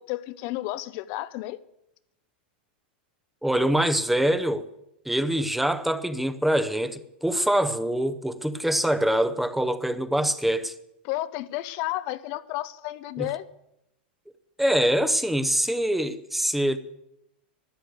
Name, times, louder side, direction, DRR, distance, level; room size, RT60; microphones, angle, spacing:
voice 1, 0.0-1.6 11.0-13.5, left 16 dB, 50° left, 0.6 m, -32 dB
voice 2, 3.4-4.6 5.1-10.7 13.2-13.3 14.6-16.8, right 1 dB, 5° right, 0.8 m, -24 dB
13.0 x 9.9 x 8.0 m
hypercardioid pair, 130°, 6 cm